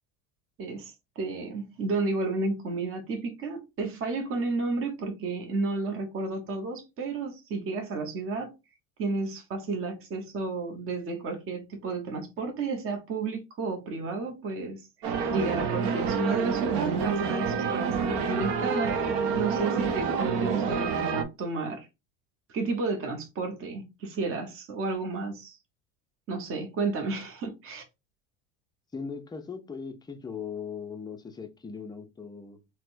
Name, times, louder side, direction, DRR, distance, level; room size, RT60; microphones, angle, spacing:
voice 1, 0.6-8.5 9.0-19.0 19.3-21.9 22.5-25.6 26.3-27.8, right 3 dB, 35° right, 0.9 m, -32 dB
sound 1, 15.0-21.2, right 5 dB, 65° right, 0.8 m, -28 dB
voice 2, 28.9-32.6, left 6 dB, 10° left, 0.4 m, -39 dB
4.1 x 2.1 x 2.5 m
hypercardioid pair, 95°, 37 cm